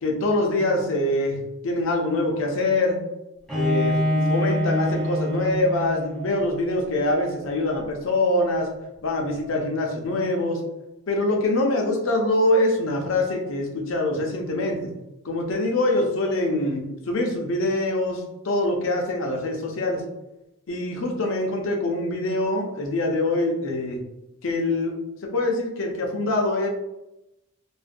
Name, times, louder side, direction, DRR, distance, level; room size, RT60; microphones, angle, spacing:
voice 1, 0.0-3.0 3.5-8.7 9.0-10.6 11.1-14.8 15.2-20.0 20.7-24.0 24.4-25.0 25.2-26.7, left 2 dB, 70° left, 1 dB, 0.5 m, -24 dB
Bowed string instrument, 3.5-6.5, equal, ahead, 0.5 m, -25 dB
2.4 x 2.1 x 2.5 m, 0.91 s
head